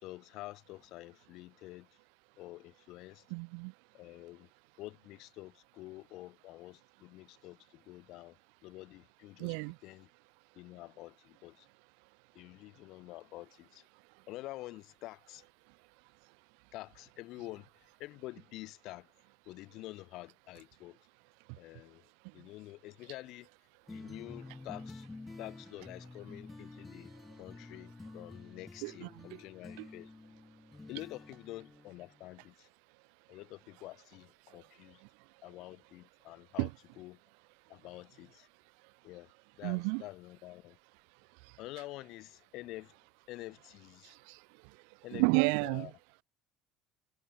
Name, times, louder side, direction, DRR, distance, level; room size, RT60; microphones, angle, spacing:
voice 1, 0.0-1.9 2.4-3.3 3.9-4.5 4.8-8.4 8.6-9.5 9.8-10.1 10.5-11.7 12.3-13.8 14.3-15.4 16.7-17.7 18.0-19.1 19.4-21.0 21.6-22.0 22.3-23.5 23.9-25.1 25.4-27.1 27.4-30.1 30.9-32.7 33.3-35.0 35.4-36.7 37.0-37.2 37.7-38.5 39.0-39.3 39.6-40.8 41.6-42.9 43.3-44.2 45.0-45.3 45.6-45.9, left 18 dB, 70° left, 1.6 m, -48 dB
voice 2, 3.3-3.7 9.4-9.8 28.8-29.4 29.8-29.9 36.6-36.7 39.6-40.0 44.0-44.4 45.1-45.9, right 40 dB or more, 80° right, 0.3 m, -31 dB
sound 1, 23.9-32.3, left 3 dB, 15° left, 7.8 m, -50 dB
supercardioid pair, 95°, 0 cm